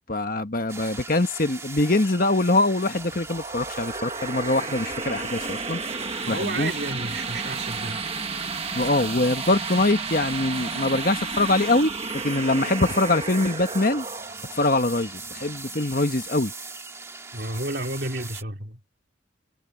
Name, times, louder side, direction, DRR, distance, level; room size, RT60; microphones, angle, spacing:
voice 1, 0.1-5.8 6.3-6.7 8.7-11.9 12.2-14.0 14.6-16.5, left 2 dB, 45° left, 1.4 m, -23 dB
sound 1, 0.7-18.4, right 3 dB, 15° right, 1.8 m, -40 dB
sound 2, 3.0-16.1, right 4 dB, 30° right, 1.3 m, -33 dB
voice 2, 6.3-8.1 17.3-18.8, right 2 dB, 55° right, 2.8 m, -31 dB
head